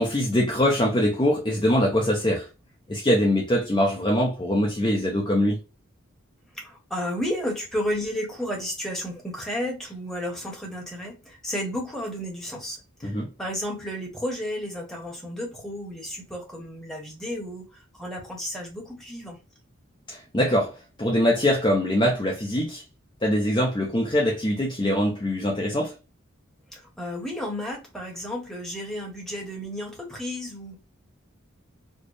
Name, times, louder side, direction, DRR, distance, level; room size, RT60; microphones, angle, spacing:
voice 1, 0.0-2.5 2.9-5.6 13.0-13.3 20.1-22.8 23.2-25.9, left 1 dB, 20° left, 0.5 m, -23 dB
voice 2, 6.5-19.4 26.7-30.8, equal, ahead, 1.0 m, -32 dB
4.3 x 2.0 x 3.2 m
head